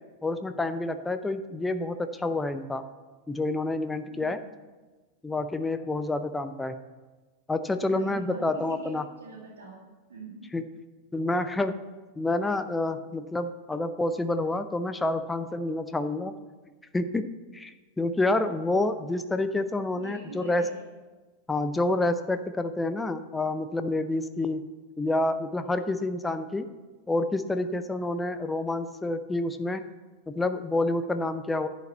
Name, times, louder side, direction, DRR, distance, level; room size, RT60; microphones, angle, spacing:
voice 1, 0.2-2.8 3.3-4.4 5.2-6.7 7.5-9.1 10.5-10.6 11.1-11.7 12.2-16.3 16.9-17.3 17.5-20.6 21.5-24.6 25.0-26.7 27.1-29.8 30.3-31.7, left 2 dB, 10° left, 10 dB, 0.6 m, -28 dB
voice 2, 4.1-4.5 7.8-10.5 19.9-20.9, right 2 dB, 65° right, -3 dB, 2.4 m, -44 dB
10.5 x 5.2 x 8.0 m, 1.3 s
figure-of-eight pair, 90°, 0 cm